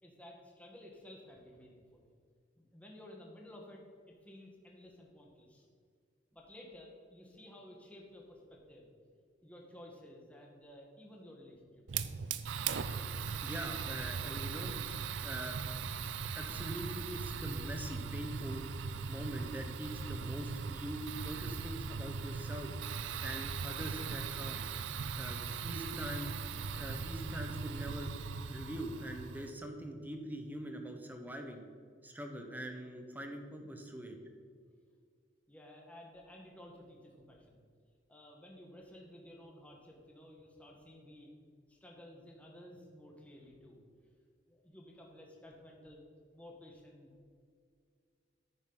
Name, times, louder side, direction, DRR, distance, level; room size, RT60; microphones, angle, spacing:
voice 1, 0.0-2.1 2.6-5.7 6.3-8.9 9.4-11.8 12.2-12.4 35.5-37.7 38.1-41.3 41.7-43.8 44.5-46.0 46.3-47.1, left 1 dB, 10° left, -1 dB, 1.4 m, -54 dB
Fire, 11.9-29.5, right 5 dB, 80° right, 0.5 m, -39 dB
voice 2, 13.4-14.7 15.2-15.6 16.3-18.6 19.1-22.7 23.2-24.6 25.1-26.3 26.7-28.1 28.5-31.6 32.0-34.2, right 1 dB, 10° right, 4 dB, 1.0 m, -43 dB
10.0 x 9.3 x 3.9 m, 2.1 s
head